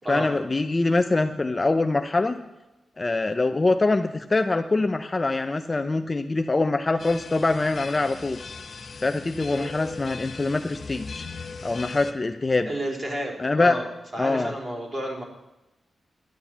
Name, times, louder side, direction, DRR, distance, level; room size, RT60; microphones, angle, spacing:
voice 1, 0.1-2.4 3.0-8.4 9.0-11.3 11.6-12.7 13.4-13.8 14.2-14.5, left 3 dB, 25° left, 7 dB, 0.6 m, -24 dB
sound 1, 7.0-12.1, left 4 dB, 50° left, 0.8 m, -39 dB
voice 2, 12.6-13.9 14.1-15.2, equal, 30° right, 1 dB, 3.3 m, -31 dB
11.5 x 9.5 x 7.3 m, 0.98 s
wide cardioid pair, 130°, 0 cm